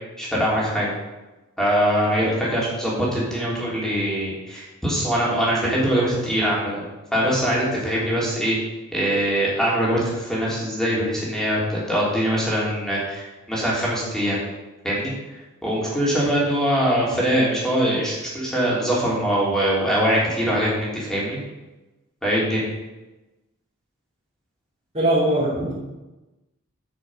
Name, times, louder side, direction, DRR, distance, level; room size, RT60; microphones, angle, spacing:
voice 1, 0.2-0.9 1.6-6.8 7.1-8.6 8.9-14.4 14.8-15.1 15.6-21.4 22.2-22.7, equal, ahead, -6 dB, 3.3 m, -22 dB
voice 2, 24.9-25.7, right 1 dB, 30° right, -10 dB, 3.5 m, -20 dB
9.4 x 6.1 x 6.3 m, 1.1 s
head